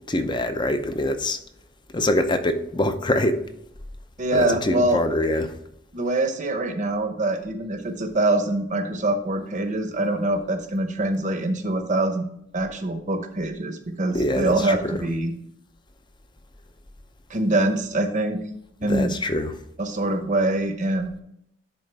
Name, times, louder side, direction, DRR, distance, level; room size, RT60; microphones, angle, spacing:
voice 1, 0.1-1.4 1.9-3.4 4.3-5.5 14.1-15.0 18.9-19.5, left 1 dB, 25° left, 0.6 m, -24 dB
voice 2, 4.2-5.0 5.9-15.3 17.3-18.4 18.8-19.1 19.8-21.2, right 2 dB, 40° right, 0.9 m, -24 dB
10.5 x 3.8 x 3.4 m
head